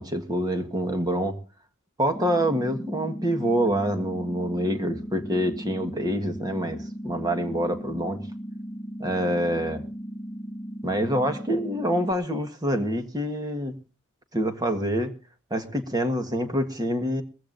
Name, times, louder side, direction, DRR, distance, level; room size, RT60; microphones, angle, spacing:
voice 1, 0.0-1.4 2.0-8.2 9.0-9.8 10.8-13.7 14.3-15.1 15.5-17.2, equal, 20° right, 1.5 m, -26 dB
sound 1, 2.1-12.1, equal, 5° left, 1.4 m, -37 dB
21.5 x 15.0 x 2.7 m
head